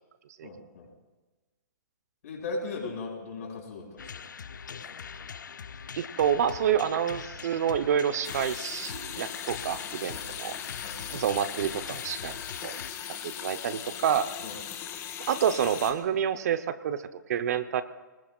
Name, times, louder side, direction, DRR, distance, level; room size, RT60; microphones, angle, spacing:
voice 1, 0.4-0.9 2.2-4.2 4.7-5.0 10.1-10.3 10.8-11.0 14.4-14.6, left 3 dB, 55° left, 1 dB, 5.7 m, -38 dB
sound 1, 4.0-12.9, left 6 dB, 80° left, 0.7 m, -42 dB
voice 2, 6.0-10.5 11.1-12.8 13.2-14.3 15.3-17.8, right 8 dB, 55° right, 12 dB, 0.9 m, -28 dB
sound 2, 8.2-15.9, left 9 dB, 25° left, 1.5 m, -39 dB
27.0 x 20.0 x 2.5 m, 1.2 s
hypercardioid pair, 130°, 10 cm